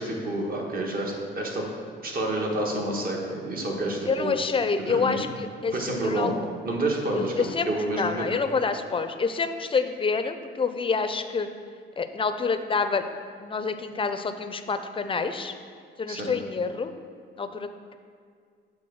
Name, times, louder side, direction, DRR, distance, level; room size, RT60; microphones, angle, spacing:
voice 1, 0.0-1.7 2.0-4.3 4.9-5.2 5.7-6.3 6.6-8.3 16.1-16.3, right 1 dB, 45° right, -1 dB, 1.5 m, -29 dB
voice 2, 4.1-6.3 7.1-11.5 12.0-13.0 13.4-15.5 16.0-16.9 17.4-18.0, left 4 dB, 25° left, 9 dB, 0.5 m, -27 dB
7.7 x 3.5 x 6.3 m, 2.1 s
cardioid pair, 90°, 20 cm